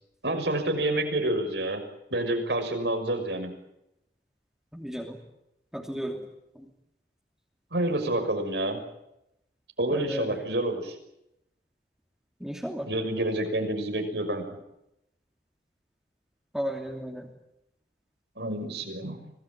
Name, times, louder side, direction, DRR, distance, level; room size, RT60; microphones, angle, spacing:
voice 1, 0.2-1.8 2.1-3.5 7.7-8.8 9.8-10.9 12.8-14.4 18.4-19.2, right 1 dB, 75° right, 6 dB, 6.1 m, -28 dB
voice 2, 4.7-5.2 5.7-6.2 6.5-6.7 9.9-10.4 12.4-12.9 16.5-17.3, equal, 5° right, 0 dB, 2.9 m, -34 dB
26.0 x 19.5 x 9.2 m, 0.84 s
head